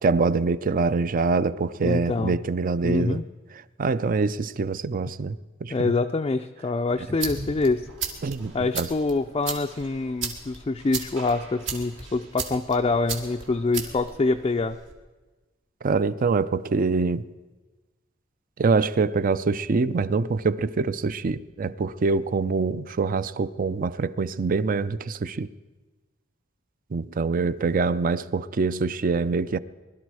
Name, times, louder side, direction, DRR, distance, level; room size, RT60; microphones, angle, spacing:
voice 1, 0.0-3.2 3.8-5.9 8.2-8.9 15.8-17.2 18.6-25.5 26.9-29.6, right 4 dB, 45° right, 0.5 m, -25 dB
voice 2, 1.8-2.4 2.8-3.2 5.7-7.9 8.5-14.8, left 3 dB, 25° left, 0.4 m, -25 dB
sound 1, 6.9-14.9, right 5 dB, 70° right, 1.9 m, -36 dB
21.0 x 12.0 x 4.8 m
head